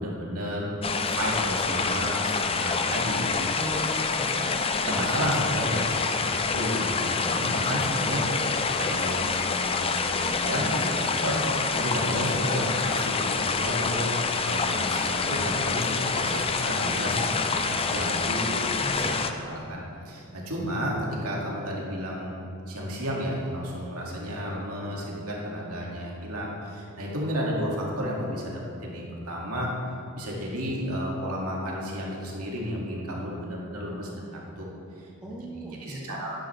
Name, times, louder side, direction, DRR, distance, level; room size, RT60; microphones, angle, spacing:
voice 1, 0.0-3.3 4.3-11.5 11.7-19.0 19.4-22.3 22.7-29.8 30.1-34.7 35.0-35.4 35.8-36.4, equal, 75° right, -3 dB, 2.3 m, -32 dB
sound 1, 0.8-19.3, left 4 dB, 25° left, 0.5 m, -27 dB
voice 2, 3.5-4.6 18.8-19.2 35.2-36.2, right 1 dB, 5° right, -3 dB, 1.0 m, -36 dB
12.5 x 10.0 x 3.4 m, 2.6 s
head